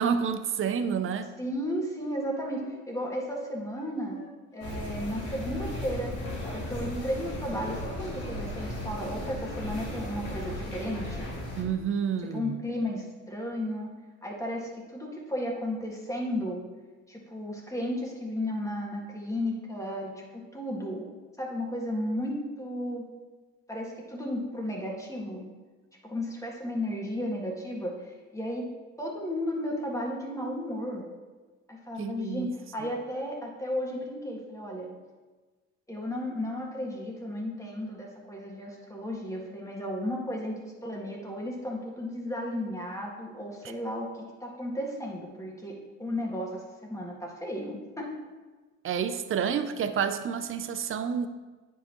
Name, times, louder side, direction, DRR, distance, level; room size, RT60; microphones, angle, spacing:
voice 1, 0.0-1.3 11.5-12.6 32.0-32.5 48.8-51.3, right 7 dB, 45° right, 10 dB, 0.6 m, -29 dB
voice 2, 1.4-4.2 4.5-6.1 6.4-11.3 12.3-13.9 14.2-16.6 17.1-21.1 21.4-23.1 23.7-25.4 26.0-28.6 29.0-31.0 31.7-34.9 35.9-48.1, left 1 dB, 10° left, -2 dB, 1.8 m, -34 dB
Wind instrument woodwind instrument, 2.1-6.8 7.0-8.1 8.4-8.6, left 3 dB, 40° left, 1.7 m, -52 dB
sound 1, 4.6-11.6, left 1 dB, 85° left, 2.4 m, -36 dB
9.2 x 5.5 x 3.0 m, 1.3 s
cardioid pair, 90°, 30 cm